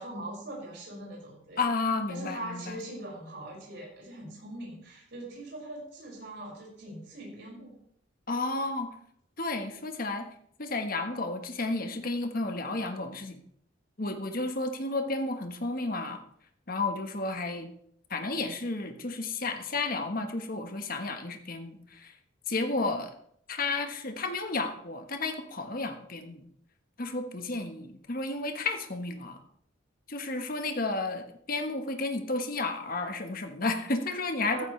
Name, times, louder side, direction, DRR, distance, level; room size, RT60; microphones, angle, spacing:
voice 1, 0.0-1.6 2.1-7.8 34.5-34.7, right 1 dB, 60° right, -4 dB, 6.0 m, -41 dB
voice 2, 1.6-2.8 8.3-8.9 9.4-10.3 10.6-13.4 14.0-16.2 16.7-17.7 18.1-22.1 22.5-23.1 23.5-26.4 27.0-29.4 30.1-34.6, left 3 dB, 45° left, 6 dB, 1.4 m, -32 dB
15.0 x 13.0 x 3.3 m, 0.69 s
head